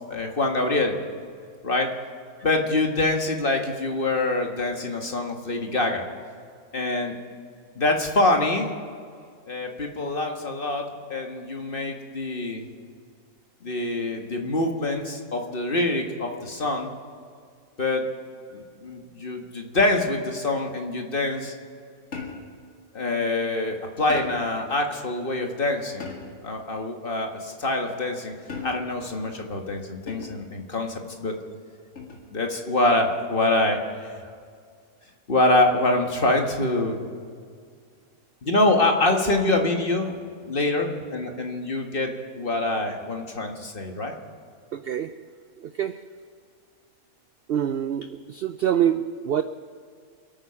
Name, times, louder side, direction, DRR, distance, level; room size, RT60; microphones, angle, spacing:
voice 1, 0.1-1.0 1.6-1.9 2.4-6.1 6.7-7.2 7.8-8.7 9.5-12.7 13.6-16.9 17.8-18.1 18.5-21.5 22.9-26.1 26.4-28.3 28.6-31.4 32.3-34.1 35.3-37.0 38.4-40.1 40.4-44.1, left 2 dB, 35° left, 2 dB, 1.7 m, -25 dB
sound 1, 22.1-22.6 24.1-24.6 26.0-26.5 28.5-29.1 30.1-30.5 32.0-32.3, left 4 dB, 55° left, 2.5 m, -37 dB
voice 2, 44.7-46.2 47.5-49.4, right 9 dB, 75° right, 11 dB, 0.5 m, -27 dB
27.0 x 9.2 x 5.8 m, 2.2 s
omnidirectional pair, 1.6 m